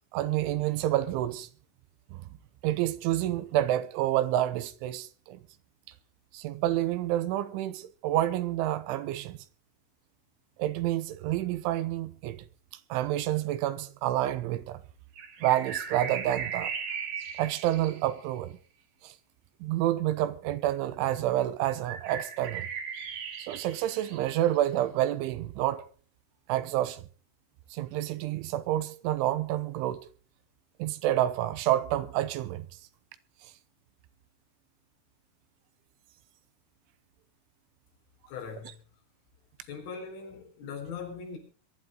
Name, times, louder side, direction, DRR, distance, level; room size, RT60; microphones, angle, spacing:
voice 1, 0.1-1.5 2.1-2.2 2.6-5.4 6.3-9.4 10.6-12.4 12.9-14.8 15.4-16.7 17.4-18.6 19.0-19.1 19.6-22.7 23.4-25.8 26.5-27.0 27.7-30.1 30.8-32.7, right 13 dB, 80° right, 3.2 m, -28 dB
sound 1, 15.1-18.4 21.8-24.8, right 7 dB, 60° right, 3.9 m, -37 dB
voice 2, 38.3-38.8 39.6-41.4, left 5 dB, 85° left, 6.8 m, -40 dB
23.0 x 12.0 x 3.9 m
omnidirectional pair, 5.6 m